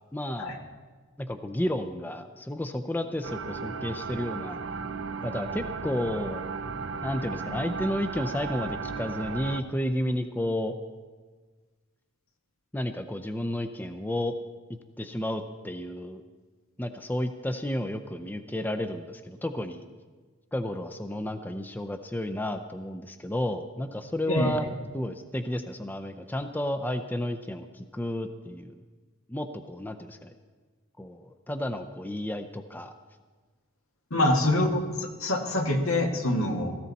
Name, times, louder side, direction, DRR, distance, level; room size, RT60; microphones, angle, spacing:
voice 1, 0.1-0.6 1.2-4.6 5.2-6.4 7.0-10.8 12.7-14.3 14.7-16.2 16.8-19.9 20.5-24.7 24.9-28.8 29.3-30.3 31.0-32.9 34.2-34.6, left 1 dB, 10° left, 8 dB, 0.5 m, -32 dB
sound 1, 3.2-9.6, right 4 dB, 55° right, 0.6 m, -35 dB
voice 2, 34.1-36.7, left 1 dB, 80° left, 3 dB, 1.9 m, -25 dB
17.5 x 15.0 x 4.1 m, 1.4 s
head